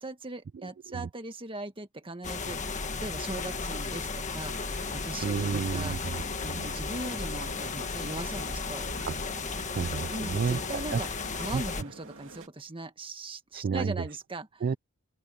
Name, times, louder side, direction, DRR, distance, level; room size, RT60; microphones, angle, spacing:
voice 1, 0.0-6.0 6.4-8.8 10.1-11.1 11.3-14.6, right 2 dB, 25° right, 1.7 m, -39 dB
sound 1, 2.2-11.8, left 4 dB, 35° left, 1.5 m, -34 dB
sound 2, 4.5-12.5, right 3 dB, 65° right, 2.6 m, -48 dB
voice 2, 5.2-6.7 9.1-9.2 9.8-11.0 11.5-11.6 13.5-14.1 14.6-14.7, right 5 dB, 45° right, 0.3 m, -31 dB
open air
head